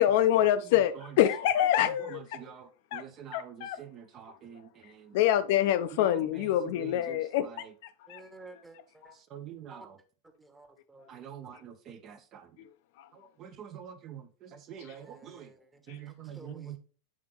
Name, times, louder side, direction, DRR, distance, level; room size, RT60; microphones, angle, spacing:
voice 1, 0.0-2.4 2.9-3.0 3.3-3.8 4.3-4.4 5.1-8.2 12.6-12.7 13.0-13.1 15.9-16.0, left 12 dB, 50° left, 0.4 m, -26 dB
voice 2, 1.8-5.2 5.9-7.7 9.3-10.0 11.1-12.5 13.1-15.5 15.9-16.8, right 9 dB, 35° right, 0.5 m, -46 dB
voice 3, 8.1-9.1 9.7-9.9 10.4-11.4 14.8-16.8, right 2 dB, 10° right, 0.9 m, -53 dB
8.4 x 3.7 x 3.4 m
figure-of-eight pair, 90°, 0 cm